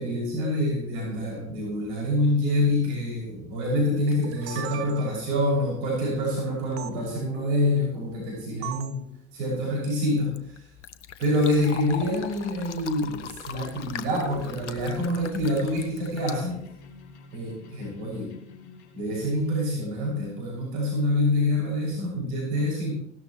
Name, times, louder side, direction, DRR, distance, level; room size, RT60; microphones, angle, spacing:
voice 1, 0.0-9.0 9.3-10.7 11.2-16.6 17.3-18.3 18.9-22.9, left 1 dB, 65° right, -4 dB, 6.5 m, -26 dB
sound 1, 4.1-5.4 6.8-6.9 8.6-9.0, right 13 dB, 40° right, 0.8 m, -38 dB
Fill (with liquid), 10.1-17.2, left 9 dB, 80° left, 1.0 m, -41 dB
sound 2, 13.5-19.5, left 4 dB, 60° left, 4.3 m, -47 dB
17.5 x 12.5 x 3.2 m, 0.71 s
hypercardioid pair, 80°, 35 cm